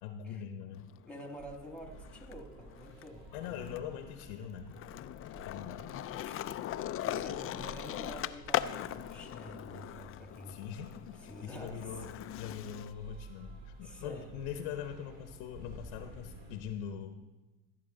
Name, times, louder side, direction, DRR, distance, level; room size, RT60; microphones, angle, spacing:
voice 1, 0.0-0.9 3.3-4.7 5.4-5.9 10.5-17.2, left 8 dB, 75° left, 7 dB, 0.9 m, -42 dB
Skateboard, 0.8-2.3 2.7-12.9, left 12 dB, 35° left, 0.4 m, -40 dB
voice 2, 1.1-3.6 6.2-6.4 7.0-10.6 11.3-11.8 13.8-14.3, equal, 5° left, 4 dB, 1.8 m, -48 dB
sound 1, 1.4-16.6, right 1 dB, 60° right, 2.5 m, -52 dB
14.0 x 8.1 x 3.9 m, 1.1 s
supercardioid pair, 80°, 39 cm